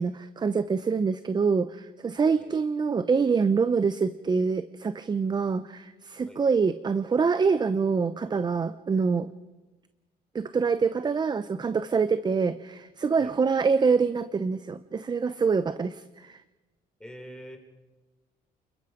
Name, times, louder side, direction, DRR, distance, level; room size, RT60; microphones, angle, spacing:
voice 1, 0.0-9.3 10.3-16.4, right 5 dB, 25° right, 13 dB, 0.7 m, -25 dB
voice 2, 17.0-17.6, equal, 5° left, 3 dB, 4.2 m, -44 dB
28.5 x 21.5 x 5.1 m, 1.1 s
cardioid pair, 110°, 17 cm